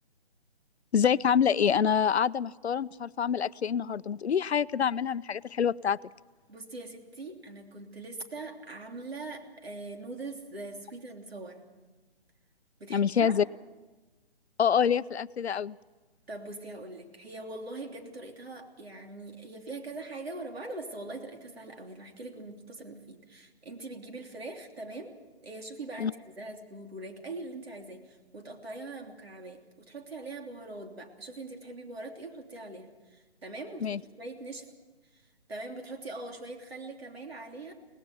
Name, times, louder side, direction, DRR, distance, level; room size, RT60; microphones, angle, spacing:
voice 1, 0.9-6.0 12.9-13.4 14.6-15.8 26.0-26.1 33.8-34.0, left 7 dB, 75° left, 17 dB, 0.6 m, -26 dB
voice 2, 6.5-11.6 12.8-13.4 16.3-25.2 25.4-34.7 35.1-37.7, right 2 dB, 65° right, 3 dB, 3.2 m, -42 dB
23.0 x 19.0 x 7.1 m, 1.2 s
hypercardioid pair, 170°, 33 cm